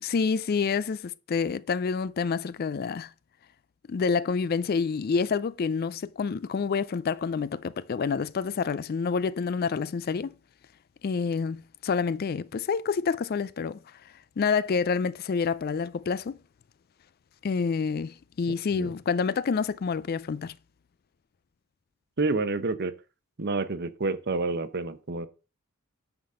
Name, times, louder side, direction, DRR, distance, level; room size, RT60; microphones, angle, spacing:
voice 1, 0.0-3.1 3.9-10.3 11.0-13.8 14.4-16.4 17.4-20.5, left 5 dB, 45° left, 0.4 m, -28 dB
voice 2, 22.2-22.9 23.4-25.3, right 3 dB, 50° right, 0.8 m, -28 dB
9.7 x 4.1 x 6.8 m
head